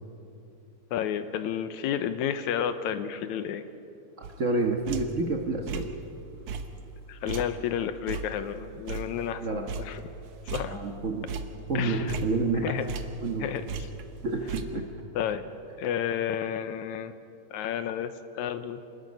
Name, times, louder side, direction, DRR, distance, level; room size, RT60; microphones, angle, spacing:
voice 1, 0.9-3.6 7.1-10.0 10.5-10.8 11.7-12.1 12.6-12.9 13.4-13.7 15.2-15.4 15.8-17.1 17.5-18.8, left 9 dB, 85° left, 11 dB, 2.1 m, -31 dB
sound 1, 4.2-5.3 5.7-6.1 6.5-9.4 9.7-11.0 11.3-13.4 13.7-14.6, right 5 dB, 65° right, 2.1 m, -37 dB
voice 2, 4.2-5.9 9.4-9.6 10.7-11.3 11.7-12.8 13.2-13.5 14.2-14.8, right 3 dB, 90° right, 2 dB, 0.6 m, -29 dB
27.5 x 19.5 x 5.3 m, 2.8 s
omnidirectional pair, 3.3 m